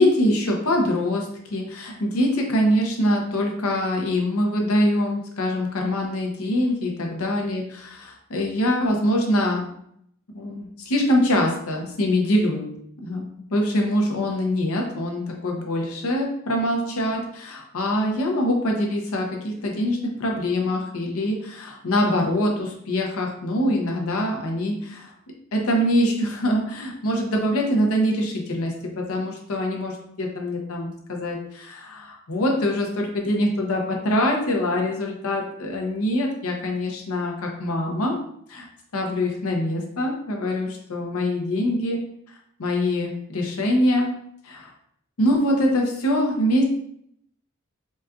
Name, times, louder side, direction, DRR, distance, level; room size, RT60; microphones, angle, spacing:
voice 1, 0.0-7.6 8.0-9.6 10.3-12.7 13.0-13.2 13.5-25.1 25.5-38.2 38.5-38.7 38.9-42.0 42.6-44.1 44.4-44.7 45.2-46.6, left 1 dB, 80° left, 1 dB, 0.7 m, -24 dB
4.1 x 2.3 x 2.4 m, 0.70 s
head